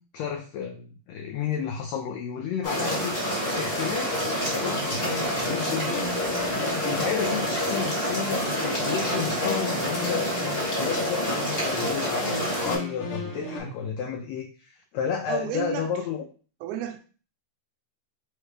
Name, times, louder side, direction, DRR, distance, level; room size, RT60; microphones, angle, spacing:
voice 1, 0.1-6.2 6.5-16.2, left 7 dB, 80° left, 2 dB, 1.6 m, -32 dB
sound 1, 2.6-12.8, equal, 25° left, 1.4 m, -27 dB
sound 2, 4.4-13.6, left 4 dB, 65° left, 1.7 m, -37 dB
voice 2, 13.2-13.7 15.3-15.9 16.6-17.0, right 10 dB, 80° right, 5 dB, 2.0 m, -33 dB
4.7 x 3.3 x 3.2 m, 0.38 s
omnidirectional pair, 3.5 m